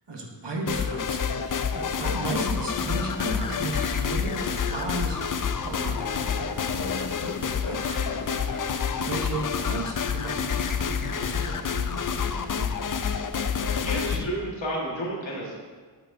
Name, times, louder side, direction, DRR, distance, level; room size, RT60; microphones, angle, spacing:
voice 1, 0.1-12.9, right 2 dB, 65° right, 0 dB, 1.2 m, -35 dB
sound 1, 0.7-14.2, left 6 dB, 45° left, 0.4 m, -28 dB
Piano, 2.6-9.4, left 1 dB, 15° left, 0.9 m, -44 dB
voice 2, 13.7-15.5, right 1 dB, 75° left, -3 dB, 1.7 m, -31 dB
8.5 x 6.8 x 2.7 m, 1.5 s
wide cardioid pair, 50°, 45 cm